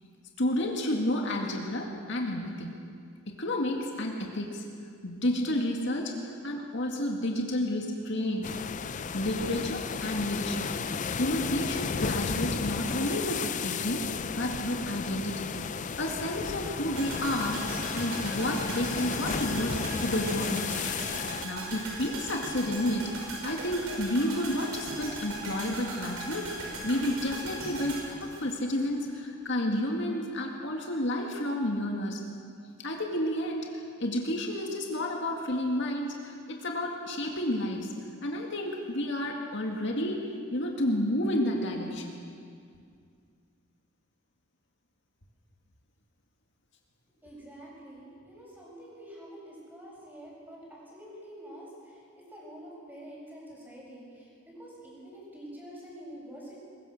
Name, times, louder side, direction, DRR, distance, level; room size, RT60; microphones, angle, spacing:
voice 1, 0.4-2.7 3.4-4.7 5.0-8.5 8.9-10.7 11.2-14.0 14.4-15.6 16.0-20.7 21.4-26.5 26.8-32.2 32.8-37.9 38.2-42.1, left 1 dB, 60° left, 1 dB, 2.2 m, -31 dB
sound 1, 8.4-21.5, left 5 dB, 35° left, 0.5 m, -33 dB
sound 2, 17.0-29.1 29.4-29.5, right 2 dB, 90° right, 5.8 m, -39 dB
voice 2, 47.2-56.6, right 1 dB, 10° right, -5 dB, 7.3 m, -47 dB
22.5 x 21.5 x 6.7 m, 2.3 s
head